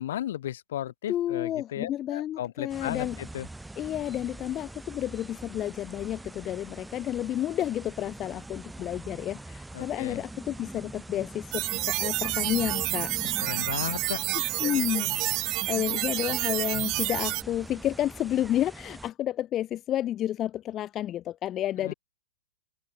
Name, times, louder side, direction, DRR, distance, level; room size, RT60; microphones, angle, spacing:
voice 1, 0.0-3.5 9.7-10.2 13.2-14.2 21.8-21.9, left 12 dB, 55° left, 4.0 m, -35 dB
voice 2, 1.1-3.2 3.8-13.1 14.6-21.9, left 12 dB, 25° left, 1.9 m, -31 dB
sound 1, 2.7-19.1, right 2 dB, 5° right, 2.5 m, -44 dB
sound 2, 11.5-17.4, right 20 dB, 35° right, 1.3 m, -29 dB
open air
figure-of-eight pair, 105°, 0 cm